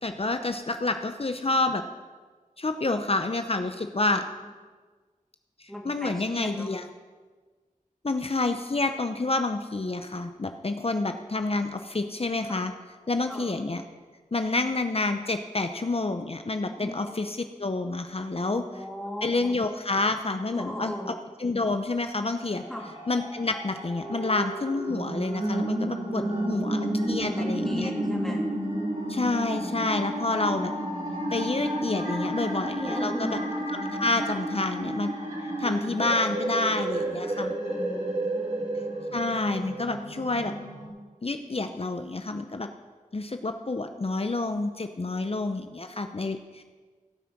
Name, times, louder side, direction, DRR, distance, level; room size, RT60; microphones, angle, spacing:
voice 1, 0.0-1.8 2.6-4.2 5.6-6.9 8.0-12.7 13.1-13.8 14.3-18.8 19.2-21.1 21.4-22.6 23.1-27.9 29.1-30.7 31.3-33.4 33.7-35.2 35.6-37.5 39.1-40.5 41.2-42.7 43.1-46.6, left 2 dB, 45° left, 7 dB, 0.7 m, -28 dB
voice 2, 5.7-6.7 12.5-12.7 13.3-13.6 16.6-17.0 18.4-19.5 20.5-21.1 22.7-22.9 26.1-26.7 27.0-28.4 32.8-33.4 37.7-38.6, equal, 5° left, -1 dB, 2.6 m, -38 dB
sound 1, 22.4-40.9, right 1 dB, 55° right, 3.7 m, -31 dB
17.0 x 6.0 x 6.1 m, 1.4 s
wide cardioid pair, 50°, 14 cm